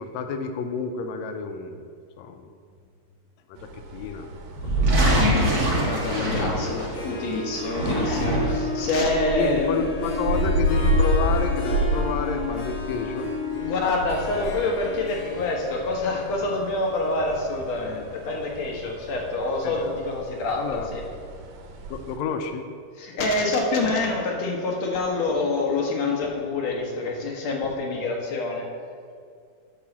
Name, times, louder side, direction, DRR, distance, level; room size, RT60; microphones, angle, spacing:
voice 1, 0.0-1.9 2.2-2.6 3.5-4.3 4.6-5.2 6.0-6.7 9.3-13.3 14.3-14.6 19.6-19.9 20.5-20.9 21.9-22.7, left 5 dB, 85° left, 7 dB, 1.6 m, -30 dB
sound 1, 3.6-22.2, equal, 85° right, 2.8 m, -31 dB
sound 2, 4.6-7.1 7.6-8.7, right 1 dB, 40° right, 1.6 m, -23 dB
Harp, 5.5-18.4, left 4 dB, 45° left, 2.2 m, -33 dB
voice 2, 5.8-9.8 13.6-21.0 23.0-28.7, left 2 dB, 60° left, -1 dB, 2.2 m, -26 dB
8.9 x 4.8 x 7.1 m, 2.2 s
omnidirectional pair, 3.8 m